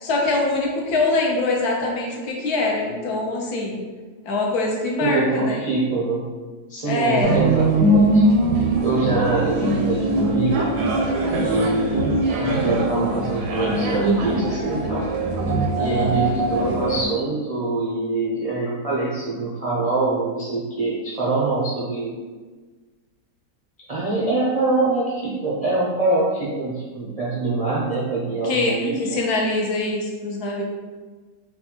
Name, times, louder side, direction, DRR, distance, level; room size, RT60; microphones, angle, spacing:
voice 1, 0.0-3.8 4.2-5.6 6.8-7.4 15.8-16.1 28.4-30.6, left 2 dB, 70° left, -1 dB, 1.2 m, -23 dB
voice 2, 5.0-6.3 6.7-8.3 8.5-10.7 11.4-12.1 12.4-15.0 15.7-22.1 23.9-29.2, right 3 dB, 50° right, -7 dB, 0.4 m, -24 dB
sound 1, 7.2-17.1, right 1 dB, 75° right, 1.1 m, -21 dB
4.1 x 2.3 x 4.3 m, 1.3 s
omnidirectional pair, 1.8 m